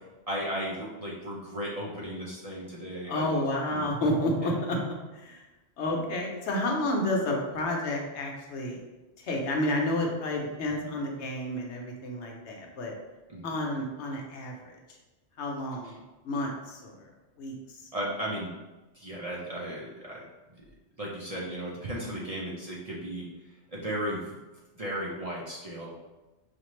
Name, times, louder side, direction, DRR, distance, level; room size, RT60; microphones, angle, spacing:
voice 1, 0.3-3.4 3.7-3.8 4.4-4.5 5.9-6.1 10.8-10.9 13.3-13.6 17.9-18.5 18.9-20.2 20.5-20.6 21.0-23.3 23.7-24.4 24.8-26.0, equal, 40° right, -5 dB, 0.6 m, -35 dB
voice 2, 3.1-4.8 5.1-5.4 5.8-8.8 9.2-12.9 13.4-14.8 15.4-16.0 16.2-17.1 17.4-17.8, left 1 dB, 75° left, 1 dB, 1.0 m, -30 dB
5.0 x 2.5 x 3.1 m, 1.1 s
omnidirectional pair, 1.2 m